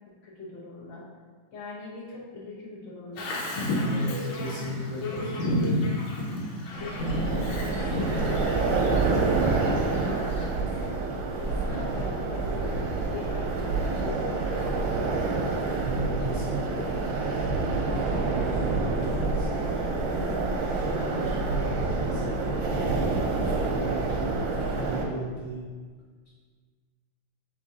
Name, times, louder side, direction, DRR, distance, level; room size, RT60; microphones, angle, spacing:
voice 1, 0.1-1.1 1.5-3.4 3.7-5.8 6.7-14.8 16.8-17.0, left 3 dB, 50° left, -4 dB, 0.9 m, -40 dB
Bird vocalization bird call bird song, 3.2-10.5, left 1 dB, 80° left, 1.6 m, -32 dB
voice 2, 3.8-5.7 11.7-12.1 15.8-17.5 18.4-20.5 20.7-25.6, right 1 dB, 60° right, -9 dB, 0.3 m, -36 dB
sound 1, 6.7-25.1, right 3 dB, 80° right, 1.4 m, -27 dB
3.6 x 3.6 x 4.0 m, 1.6 s
omnidirectional pair, 2.1 m